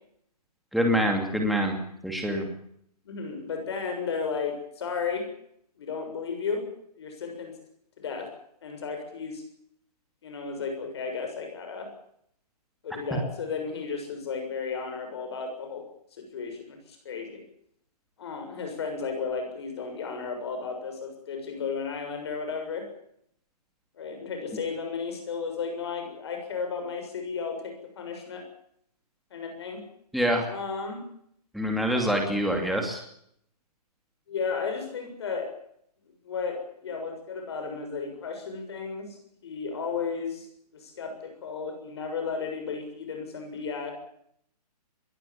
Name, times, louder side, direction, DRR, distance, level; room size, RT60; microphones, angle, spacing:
voice 1, 0.7-1.8 2.0-2.5 30.1-30.5 31.5-33.0, equal, ahead, 2 dB, 2.6 m, -25 dB
voice 2, 3.0-5.3 5.8-6.6 6.9-7.5 8.0-8.3 8.6-9.4 10.2-11.9 12.8-15.8 16.1-17.4 18.2-22.8 24.0-28.4 29.3-29.8 30.5-31.0 34.3-35.5 36.2-40.5 40.7-43.9, left 5 dB, 40° left, 5 dB, 7.0 m, -34 dB
22.0 x 18.0 x 8.9 m, 0.70 s
hypercardioid pair, 170°, 21 cm